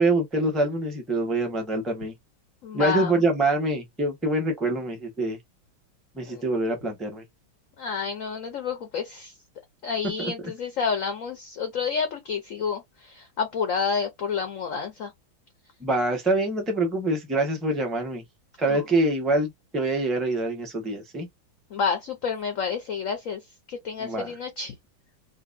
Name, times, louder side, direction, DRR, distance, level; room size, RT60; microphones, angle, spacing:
voice 1, 0.0-2.1 2.7-5.4 6.2-7.2 10.2-10.3 15.8-18.2 18.6-21.3 24.0-24.3, right 2 dB, ahead, 0.6 m, -25 dB
voice 2, 2.6-3.1 6.2-6.4 7.8-9.3 9.8-15.1 18.7-18.9 21.7-23.4 23.7-24.7, left 6 dB, 65° left, 0.8 m, -29 dB
3.8 x 2.5 x 2.6 m
omnidirectional pair, 2.2 m